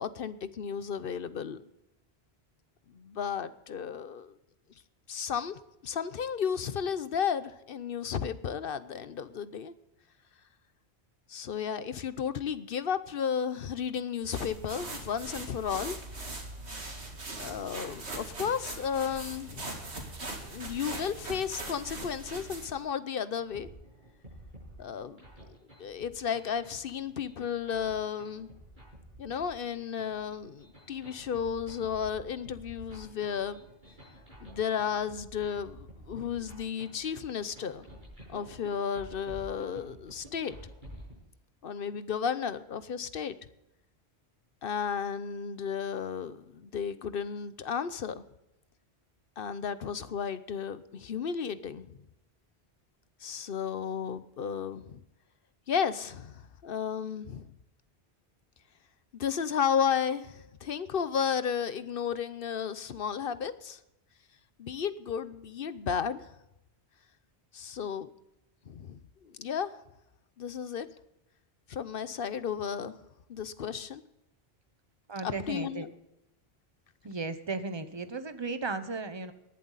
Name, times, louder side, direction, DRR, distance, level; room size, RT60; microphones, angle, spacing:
voice 1, 0.0-1.6 2.9-4.3 5.1-9.7 11.3-16.0 17.4-19.8 20.4-23.7 24.8-25.2 25.8-28.5 29.2-33.6 34.4-37.9 38.3-40.6 41.6-43.4 44.6-48.2 49.4-52.0 53.2-55.0 55.7-57.5 59.1-63.8 64.6-66.3 67.5-68.1 68.7-69.7 70.4-70.9 71.7-73.0 73.3-74.0 75.2-75.9, left 7 dB, 60° left, 14 dB, 0.9 m, -33 dB
sound 1, 14.2-22.8, right 2 dB, 85° right, 2.5 m, -41 dB
sound 2, 23.4-41.2, equal, 50° right, 7.2 m, -50 dB
voice 2, 75.1-75.9 77.0-79.3, right 3 dB, 25° right, 10 dB, 1.0 m, -35 dB
19.0 x 11.0 x 4.1 m, 0.90 s
omnidirectional pair, 1.1 m